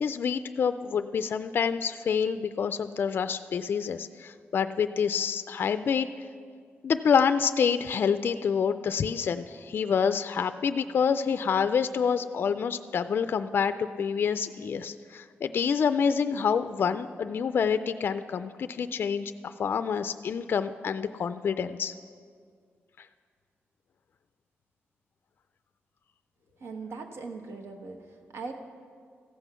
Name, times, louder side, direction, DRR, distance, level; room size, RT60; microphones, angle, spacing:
voice 1, 0.0-6.1 6.8-21.9, left 6 dB, 55° left, 11 dB, 0.3 m, -27 dB
voice 2, 26.6-28.5, right 4 dB, 75° right, 4 dB, 1.1 m, -40 dB
15.0 x 8.0 x 5.7 m, 2.1 s
wide cardioid pair, 130°, 4 cm